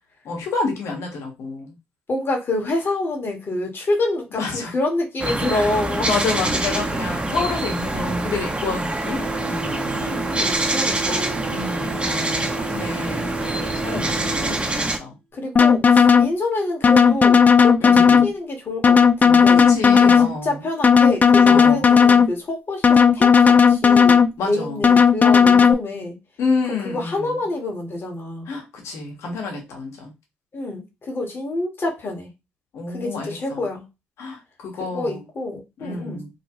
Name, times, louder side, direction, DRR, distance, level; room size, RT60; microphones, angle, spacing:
voice 1, 0.2-1.7 4.4-4.7 5.5-5.7 6.0-9.9 11.4-15.2 17.8-18.3 19.5-20.6 21.4-21.9 24.4-24.8 26.4-27.4 28.5-30.1 32.7-33.7 34.2-35.2 35.8-36.3, left 4 dB, 70° left, 1.3 m, -29 dB
voice 2, 2.1-6.1 10.0-11.4 13.9-14.2 14.5-14.7 15.3-24.2 24.4-26.2 26.7-28.5 30.5-32.3 32.9-33.8 34.8-36.2, left 2 dB, 50° left, 1.3 m, -27 dB
sound 1, 5.2-15.0, right 2 dB, 20° right, 0.7 m, -25 dB
sound 2, 9.0-15.0, right 3 dB, 80° right, 0.7 m, -33 dB
sound 3, 15.6-16.3 16.8-18.3 18.8-20.3 20.8-22.3 22.8-24.3 24.8-25.7, left 6 dB, 35° left, 0.3 m, -13 dB
3.0 x 2.2 x 2.9 m
hypercardioid pair, 45°, 5 cm